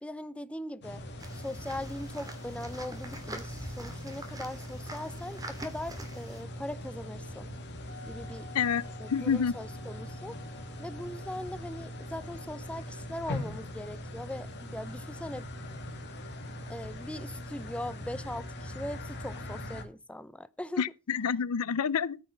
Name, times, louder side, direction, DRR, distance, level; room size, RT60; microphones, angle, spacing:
voice 1, 0.0-1.0 1.3-7.5 8.1-8.5 9.0-10.4 10.8-15.5 16.7-20.8, left 1 dB, 5° left, 0.5 m, -40 dB
sound 1, 0.8-19.8, left 1 dB, 50° left, 2.1 m, -41 dB
sound 2, 1.2-6.4, right 1 dB, 15° right, 2.1 m, -44 dB
Wind instrument woodwind instrument, 7.9-13.5, left 3 dB, 80° right, 2.8 m, -54 dB
voice 2, 9.1-9.5 20.8-22.2, left 7 dB, 75° left, 0.5 m, -28 dB
13.5 x 5.9 x 5.8 m
head